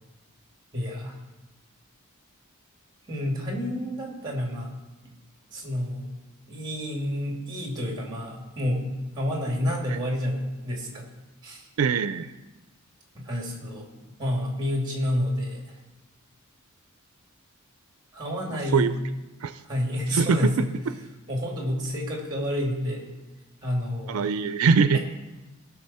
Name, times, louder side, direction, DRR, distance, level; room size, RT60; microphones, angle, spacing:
voice 1, 0.7-1.2 3.1-4.7 5.5-6.1 6.5-8.9 9.1-11.1 11.4-11.7 13.1-13.9 14.2-15.7 18.1-18.9 19.6-20.6 21.3-23.1 23.6-24.3 24.9-25.0, equal, 20° right, 0 dB, 2.4 m, -29 dB
voice 2, 11.8-12.3 18.7-18.9 19.4-19.5 20.1-20.5 24.1-25.0, right 5 dB, 85° right, 12 dB, 0.4 m, -22 dB
18.0 x 6.0 x 4.2 m, 1.1 s
head